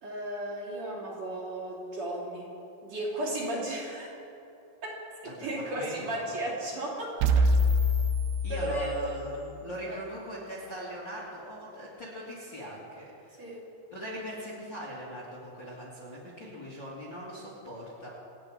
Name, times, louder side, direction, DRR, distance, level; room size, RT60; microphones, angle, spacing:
voice 1, 0.0-2.5 2.8-4.1 4.8-7.2 8.5-9.2 9.9-10.0 13.4-13.6, right 1 dB, 40° right, -7 dB, 3.9 m, -35 dB
voice 2, 5.2-6.2 8.4-13.1 13.9-18.1, equal, 30° left, -6 dB, 2.6 m, -40 dB
sound 1, 7.2-9.3, equal, 80° right, 2.9 m, -25 dB
28.5 x 9.5 x 5.0 m, 2.8 s
omnidirectional pair, 5.1 m